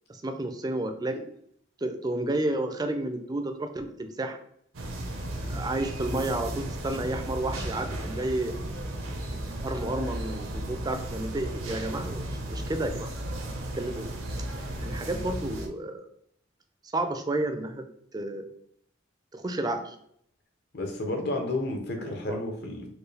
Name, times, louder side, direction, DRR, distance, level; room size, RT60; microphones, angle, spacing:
voice 1, 0.1-1.2 1.8-4.4 5.5-8.6 9.6-13.1 13.7-14.1 14.8-16.0 16.9-17.8 18.1-18.5 19.3-20.0 22.0-22.4, right 1 dB, 20° right, 6 dB, 0.4 m, -31 dB
sound 1, 4.7-15.7, right 1 dB, 85° right, 0.7 m, -35 dB
voice 2, 20.7-22.9, left 2 dB, 55° left, 2 dB, 0.8 m, -31 dB
4.5 x 2.3 x 3.2 m, 0.68 s
head